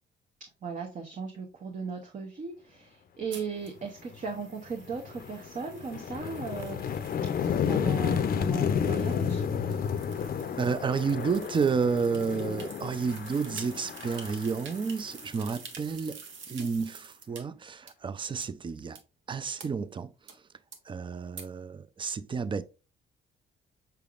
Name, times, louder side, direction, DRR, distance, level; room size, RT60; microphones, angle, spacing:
voice 1, 0.6-6.8 7.7-9.4, right 5 dB, 40° right, 0.8 m, -37 dB
sound 1, 3.3-17.4 17.9-18.0 18.4-18.5 19.0-19.1 19.6-19.7 20.3-20.4 20.7-20.8 21.4-21.5, right 5 dB, 75° right, 0.9 m, -48 dB
sound 2, 4.1-4.3 4.7-15.5, left 7 dB, 50° left, 0.5 m, -31 dB
voice 2, 10.6-16.2 16.5-19.0 19.3-20.1 20.9-22.6, right 5 dB, 25° right, 0.4 m, -30 dB
5.7 x 3.4 x 2.4 m
cardioid pair, 90°, 20 cm